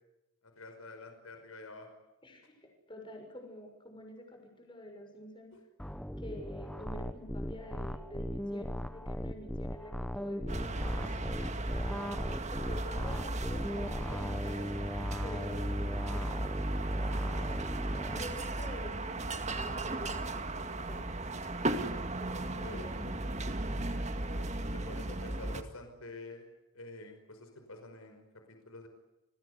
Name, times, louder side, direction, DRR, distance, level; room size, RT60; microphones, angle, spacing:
voice 1, 0.4-1.9 5.5-5.6 22.3-22.9 24.3-26.5 26.7-28.9, left 2 dB, 75° left, 6 dB, 5.3 m, -48 dB
voice 2, 2.2-5.6 6.2-14.7 15.2-17.6 18.1-21.1 22.2-23.3 23.9-24.1, equal, 20° left, 4 dB, 6.6 m, -48 dB
sound 1, 5.8-18.2, equal, 5° left, 1.1 m, -38 dB
sound 2, 10.5-25.6, right 2 dB, 30° right, 2.0 m, -35 dB
29.5 x 21.5 x 8.3 m, 0.97 s
head